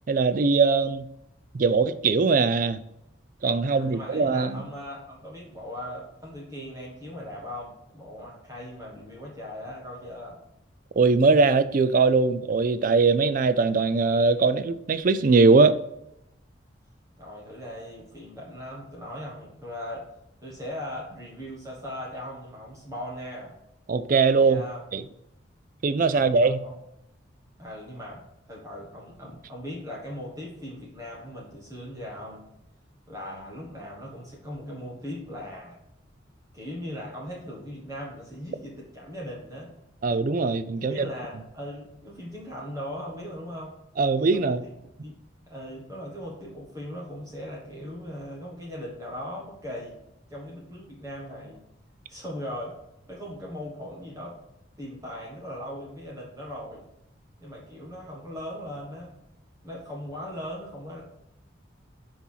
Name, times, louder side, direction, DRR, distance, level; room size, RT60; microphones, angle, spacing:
voice 1, 0.1-1.1 1.5-2.8 3.4-4.6 11.0-15.8 23.9-24.6 24.9-25.0 25.8-26.6 40.0-41.1 44.0-44.6, right 4 dB, 40° right, 0.4 m, -21 dB
voice 2, 3.6-10.4 17.2-20.1 20.4-23.5 24.3-24.8 26.0-26.8 27.6-32.4 33.1-35.7 36.5-39.7 40.8-43.8 44.3-44.6 45.0-45.1 45.5-49.9 50.3-51.6 52.1-52.7 53.1-54.4 54.8-56.8 57.4-59.1 59.6-61.0, equal, 15° right, 1.5 m, -39 dB
6.0 x 4.2 x 5.7 m
head